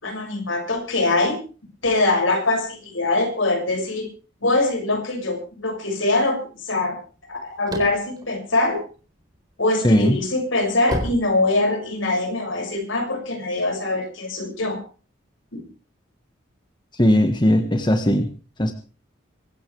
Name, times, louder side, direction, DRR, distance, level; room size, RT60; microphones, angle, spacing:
voice 1, 0.0-1.4 1.8-4.1 4.4-7.0 7.3-8.8 9.6-14.8 15.5-15.6, left 2 dB, 75° left, 3 dB, 6.6 m, -23 dB
sound 1, 7.2-9.4 9.8-12.1, equal, 20° right, 3.9 m, -31 dB
voice 2, 9.8-10.2 17.0-18.3 18.6-18.7, equal, 25° left, 6 dB, 1.4 m, -18 dB
24.5 x 14.0 x 3.4 m, 0.37 s
head